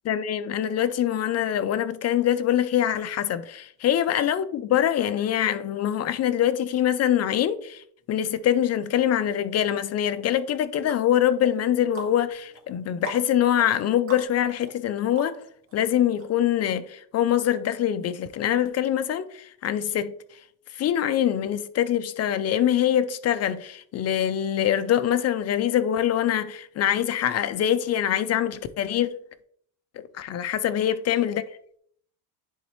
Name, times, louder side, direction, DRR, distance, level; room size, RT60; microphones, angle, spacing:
voice 1, 0.1-15.4 15.7-20.1 20.7-29.2 30.2-31.4, left 10 dB, 35° left, 0.4 m, -24 dB
sound 1, 10.3-15.7 16.2-16.3, right 3 dB, 30° right, 1.8 m, -43 dB
10.0 x 4.0 x 3.1 m
cardioid pair, 135°, 44 cm